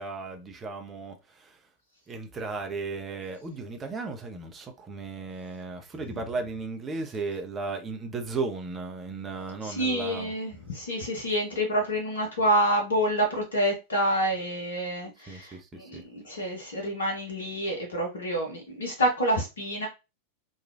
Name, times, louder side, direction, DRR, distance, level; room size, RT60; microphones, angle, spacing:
voice 1, 0.0-1.6 2.1-10.3 15.3-16.0, right 3 dB, 20° right, 0.6 m, -35 dB
voice 2, 9.6-19.9, equal, 65° left, 0.8 m, -28 dB
3.0 x 2.3 x 2.4 m
figure-of-eight pair, 90°, 0 cm